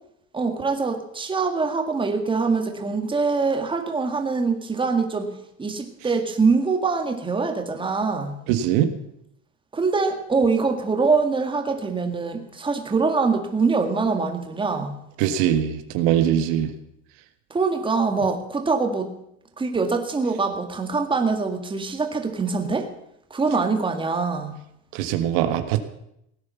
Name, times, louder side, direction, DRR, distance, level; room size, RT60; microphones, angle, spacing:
voice 1, 0.3-5.3 5.6-8.3 9.7-15.0 17.5-19.1 19.6-22.9 23.3-24.6, right 4 dB, 15° right, 5 dB, 2.0 m, -24 dB
voice 2, 8.5-8.9 15.2-16.7 24.9-25.8, right 10 dB, 70° right, 9 dB, 1.6 m, -21 dB
17.5 x 9.6 x 7.1 m, 0.77 s
cardioid pair, 140°, 37 cm